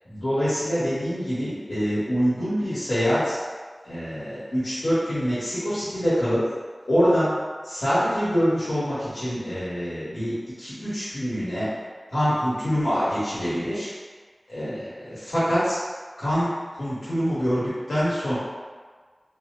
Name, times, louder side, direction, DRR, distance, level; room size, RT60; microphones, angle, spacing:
voice 1, 0.1-3.4 3.8-6.4 6.9-7.3 7.6-11.7 12.1-13.9 14.5-15.8 16.2-16.5 16.8-18.3, equal, 80° left, -12 dB, 1.2 m, -25 dB
3.0 x 2.1 x 3.6 m, 1.5 s
wide cardioid pair, 55°, 0 cm